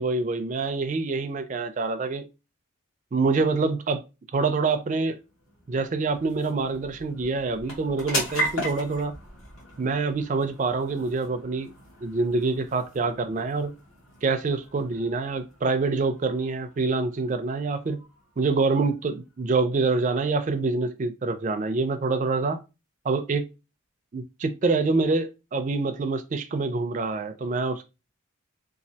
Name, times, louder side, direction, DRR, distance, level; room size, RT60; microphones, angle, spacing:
voice 1, 0.0-2.3 3.1-4.0 4.3-5.2 5.7-9.1 9.8-11.7 12.0-13.7 14.2-18.0 18.4-22.6 23.0-23.5 24.1-27.8, right 3 dB, 35° right, 0.4 m, -26 dB
sound 1, 4.7-19.5, equal, 75° left, 1.5 m, -38 dB
3.1 x 2.4 x 2.7 m
head